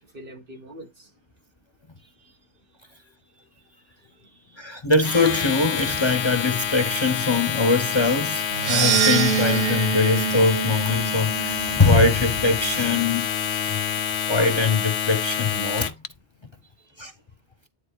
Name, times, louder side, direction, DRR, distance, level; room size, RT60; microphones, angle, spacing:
voice 1, 0.0-1.1 2.0-2.4 3.3-4.8 16.6-17.0, equal, 60° right, 1.9 m, -48 dB
voice 2, 4.6-13.3 13.7-13.9 14.3-15.9 17.0-17.1, left 3 dB, 30° left, 0.9 m, -22 dB
Domestic sounds home sounds, 4.9-16.1, left 8 dB, 90° left, 1.1 m, -27 dB
sound 1, 8.5-12.8, right 8 dB, 75° right, 0.9 m, -25 dB
10.0 x 3.8 x 4.6 m
omnidirectional pair, 1.1 m